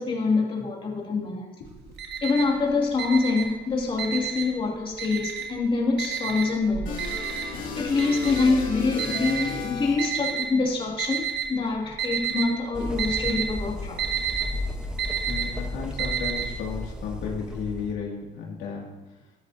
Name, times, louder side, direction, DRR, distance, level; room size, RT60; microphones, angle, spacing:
voice 1, 0.0-1.5 2.2-7.0 7.7-14.0, left 4 dB, 30° left, -2 dB, 2.6 m, -25 dB
Alarm, 1.7-2.6 2.9-4.6 5.0-5.6 6.0-10.5 11.0-11.6 11.9-12.5 12.8-16.5, right 9 dB, 75° right, 2.0 m, -30 dB
sound 1, 6.9-10.3, left 4 dB, 55° left, 2.5 m, -34 dB
sound 2, 12.7-17.9, left 1 dB, 5° right, 1.0 m, -34 dB
voice 2, 15.3-19.3, left 5 dB, 90° left, -2 dB, 2.5 m, -34 dB
12.5 x 11.5 x 2.8 m, 1.1 s
cardioid pair, 110°, 17 cm